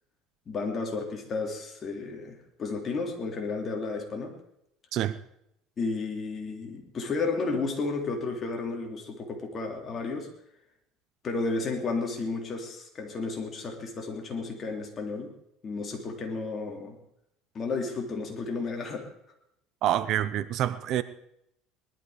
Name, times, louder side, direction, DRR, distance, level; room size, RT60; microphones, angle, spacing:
voice 1, 0.5-4.3 5.8-10.3 11.2-15.3 15.6-17.0 17.5-19.1, left 3 dB, 30° left, 2 dB, 3.1 m, -32 dB
voice 2, 19.8-21.0, right 11 dB, 50° right, 15 dB, 0.7 m, -27 dB
19.5 x 12.0 x 5.0 m, 0.77 s
cardioid pair, 140°, 0 cm